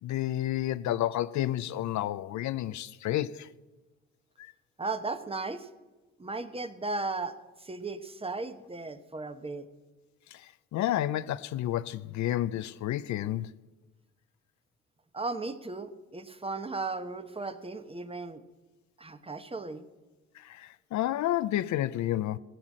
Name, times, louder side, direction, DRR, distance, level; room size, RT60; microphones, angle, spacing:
voice 1, 0.0-3.5 4.4-4.5 10.3-13.5 20.3-22.4, left 13 dB, 70° left, 0.5 m, -30 dB
voice 2, 4.8-5.7 6.2-9.7 15.1-18.4 19.0-19.9, right 3 dB, 20° right, 1.0 m, -36 dB
16.5 x 8.0 x 7.5 m
cardioid pair, 90°, 30 cm